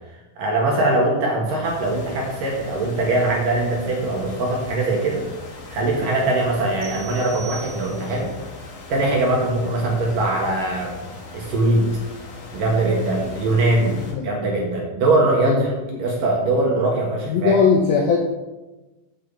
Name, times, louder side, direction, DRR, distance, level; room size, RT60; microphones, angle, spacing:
voice 1, 0.4-5.2 5.7-8.3 8.9-11.0 11.3-11.9 12.5-17.6, right 2 dB, 60° right, -2 dB, 2.7 m, -21 dB
sound 1, 1.6-14.1, left 3 dB, 55° left, 2.6 m, -39 dB
sound 2, 6.8-8.3, right 8 dB, 85° right, 3.4 m, -40 dB
voice 2, 13.9-14.3 15.4-15.6 17.3-18.2, left 6 dB, 75° left, 1 dB, 2.2 m, -19 dB
8.8 x 6.1 x 7.2 m, 1.1 s
omnidirectional pair, 5.4 m